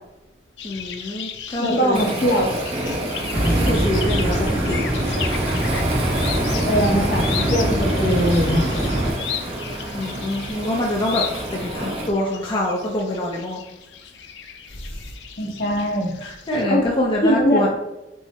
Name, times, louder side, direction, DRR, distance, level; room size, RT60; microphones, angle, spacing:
sound 1, 0.6-16.6, left 8 dB, 80° left, 0.4 m, -35 dB
voice 1, 0.6-2.0 3.5-4.9 9.9-11.2 11.5-13.6 14.8-15.0 16.2-17.7, left 1 dB, 30° left, -2 dB, 0.5 m, -25 dB
voice 2, 1.6-2.6 6.7-8.9 15.4-16.1 16.7-16.8 17.2-17.7, equal, 55° left, 0 dB, 1.0 m, -21 dB
Waves surf, 1.9-12.1, right 1 dB, 35° right, 0.6 m, -29 dB
sound 2, 3.3-9.1, right 1 dB, 65° right, 1.1 m, -22 dB
5.5 x 2.0 x 4.1 m, 1.0 s
head